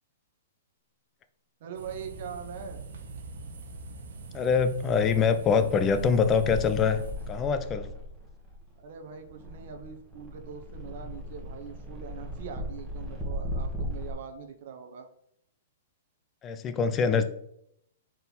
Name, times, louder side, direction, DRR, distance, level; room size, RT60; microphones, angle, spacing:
voice 1, 1.6-2.8 8.8-15.1, right 7 dB, 55° right, 5 dB, 0.9 m, -42 dB
sound 1, 1.7-7.6, right 4 dB, 70° right, 1.2 m, -42 dB
voice 2, 4.3-7.0 7.3-7.9 16.4-17.3, left 6 dB, 20° left, 11 dB, 0.5 m, -24 dB
sound 2, 5.4-14.1, equal, ahead, 1.5 m, -38 dB
4.5 x 3.9 x 5.5 m, 0.73 s
hypercardioid pair, 150°, 0 cm